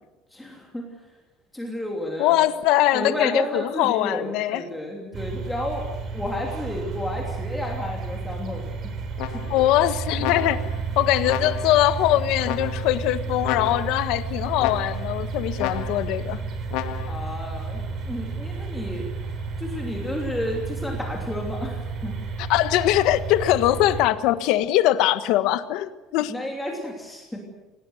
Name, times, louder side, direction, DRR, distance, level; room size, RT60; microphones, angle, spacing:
voice 1, 0.3-0.8 1.5-2.5 2.9-8.9 9.3-9.6 17.1-19.1 19.6-22.2 26.3-27.5, left 1 dB, 5° left, -1 dB, 3.0 m, -32 dB
voice 2, 2.2-4.6 9.5-16.4 22.4-26.3, left 14 dB, 60° left, 11 dB, 1.4 m, -22 dB
sound 1, 5.1-24.1, right 4 dB, 40° right, 3.6 m, -32 dB
sound 2, 9.2-9.7 10.2-10.8 11.3-11.9 12.4-13.0 13.4-14.1 14.6-15.2 15.6-16.2 16.7-17.3, left 12 dB, 80° left, 1.9 m, -32 dB
27.5 x 18.5 x 8.0 m, 1.1 s
cardioid pair, 180°, 0 cm